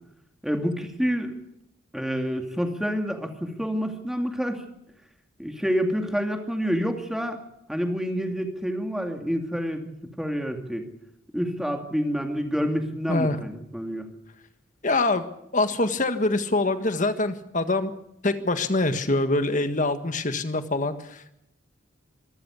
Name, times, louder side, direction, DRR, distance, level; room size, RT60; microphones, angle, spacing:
voice 1, 0.4-1.3 1.9-4.6 5.4-7.4 7.7-10.8 11.3-14.1, equal, ahead, 4 dB, 2.4 m, -28 dB
voice 2, 14.8-15.3 15.5-17.9 18.2-21.3, left 2 dB, 40° left, 9 dB, 1.6 m, -24 dB
25.5 x 14.0 x 8.3 m, 0.81 s
head